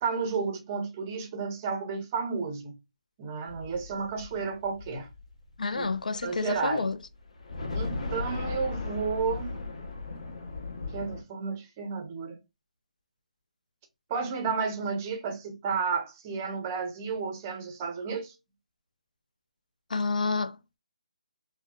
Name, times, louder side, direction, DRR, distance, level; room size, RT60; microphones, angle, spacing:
voice 1, 0.0-2.7 3.2-5.1 5.8-5.9 6.2-6.9 7.7-9.5 10.9-12.4 14.1-18.3, right 5 dB, 15° right, 0.5 m, -32 dB
sound 1, 3.5-6.2 6.6-6.7 7.2-11.2, left 3 dB, 60° left, 1.1 m, -36 dB
voice 2, 5.6-7.0 19.9-20.6, left 4 dB, 85° left, 0.4 m, -29 dB
3.7 x 2.0 x 2.3 m
hypercardioid pair, 170°, 4 cm